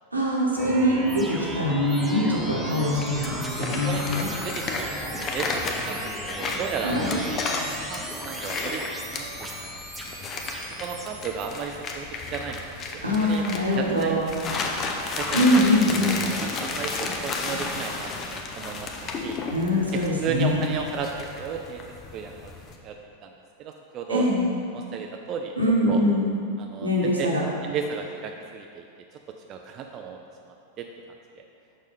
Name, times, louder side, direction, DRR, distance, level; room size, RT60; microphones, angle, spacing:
voice 1, 0.1-4.3 6.8-7.1 13.0-14.3 15.3-16.2 17.5-17.6 19.5-20.6 24.1-24.5 25.6-26.3 26.8-27.4, left 1 dB, 80° right, -3 dB, 1.2 m, -23 dB
sound 1, 0.6-11.5, right 1 dB, 5° right, 0.8 m, -36 dB
sound 2, 2.9-22.7, left 3 dB, 30° left, 0.6 m, -33 dB
voice 2, 3.8-7.4 7.9-9.8 10.8-14.2 14.5-14.7 15.1-15.6 16.1-19.0 19.2-19.4 19.9-21.8 22.1-22.5 22.8-23.3 23.6-24.2 24.7-25.5 25.9-26.0 26.6-27.3 27.6-28.9 29.5-30.2 30.4-30.9 31.4-31.5, right 6 dB, 35° right, 3 dB, 0.4 m, -34 dB
6.3 x 6.2 x 3.5 m, 2.3 s
figure-of-eight pair, 90°, 0 cm